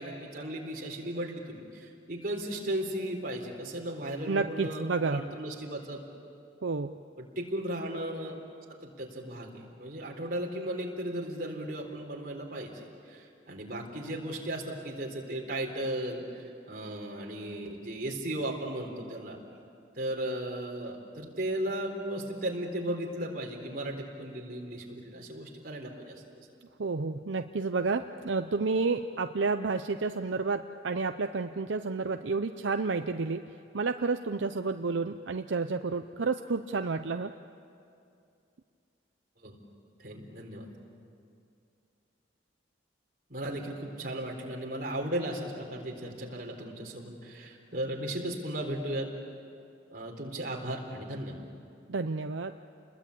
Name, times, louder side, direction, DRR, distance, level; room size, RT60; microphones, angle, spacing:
voice 1, 0.0-6.0 7.2-8.4 8.8-19.4 20.0-26.4 39.4-39.6 40.0-40.7 43.3-49.1 49.9-51.5, right 1 dB, 50° right, 0 dB, 3.8 m, -36 dB
voice 2, 4.3-5.2 6.6-6.9 26.8-33.4 33.7-37.3 51.9-52.5, right 4 dB, 80° right, 8 dB, 0.6 m, -30 dB
29.5 x 21.5 x 8.5 m, 2.5 s
head